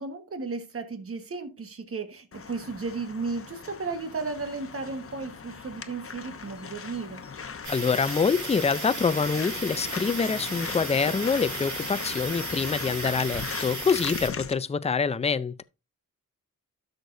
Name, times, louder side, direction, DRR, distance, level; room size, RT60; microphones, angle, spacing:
voice 1, 0.0-7.2, right 4 dB, 45° right, 1.4 m, -34 dB
sound 1, 2.3-14.5, left 6 dB, 45° left, 0.9 m, -39 dB
sound 2, 7.6-14.3, right 3 dB, 65° right, 4.8 m, -35 dB
voice 2, 7.7-15.6, left 5 dB, 20° left, 0.4 m, -26 dB
12.5 x 6.6 x 2.6 m
wide cardioid pair, 110°, 31 cm